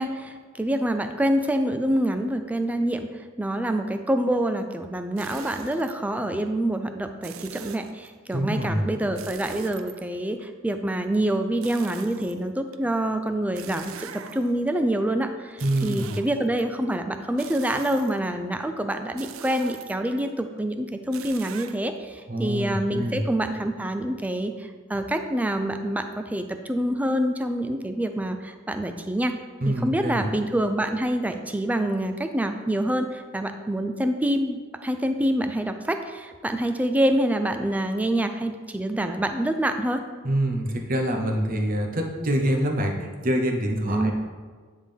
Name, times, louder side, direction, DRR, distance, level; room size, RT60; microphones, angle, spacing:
voice 1, 0.0-3.1 3.4-29.3 29.7-40.0 43.8-44.1, right 1 dB, 5° right, 7 dB, 0.3 m, -26 dB
sound 1, 5.2-5.9 7.2-8.1 9.2-10.4 11.6-12.8 13.6-14.7 15.5-16.6 17.4-18.4 19.2-20.2 21.1-21.8, right 8 dB, 80° right, 0.4 m, -42 dB
voice 2, 8.3-8.9 15.6-16.0 22.3-23.2 29.6-30.3 40.2-44.1, right 1 dB, 45° right, 2 dB, 0.8 m, -25 dB
9.6 x 3.6 x 3.4 m, 1.5 s
head